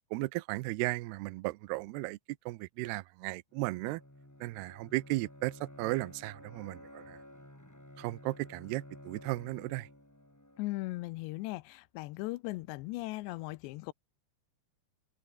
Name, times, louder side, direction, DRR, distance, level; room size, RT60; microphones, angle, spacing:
voice 1, 0.1-2.2 2.5-4.0 4.4-7.2 8.0-9.9, right 21 dB, 85° right, 2.4 m, -35 dB
Bowed string instrument, 3.5-11.3, left 1 dB, 5° left, 1.8 m, -53 dB
voice 2, 10.6-13.9, left 20 dB, 80° left, 2.8 m, -38 dB
omnidirectional pair, 5.3 m